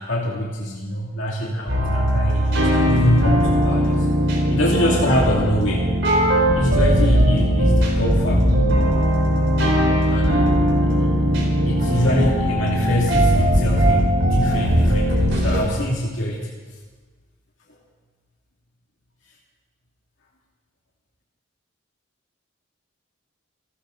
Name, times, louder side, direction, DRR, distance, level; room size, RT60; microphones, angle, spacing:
voice 1, 0.0-4.1 4.5-5.9 6.5-8.6 10.0-11.1 11.6-16.5, left 1 dB, 70° left, -3 dB, 2.3 m, -24 dB
sound 1, 1.7-15.6, equal, 65° right, 4.7 m, -19 dB
28.5 x 13.5 x 3.9 m, 1.4 s
head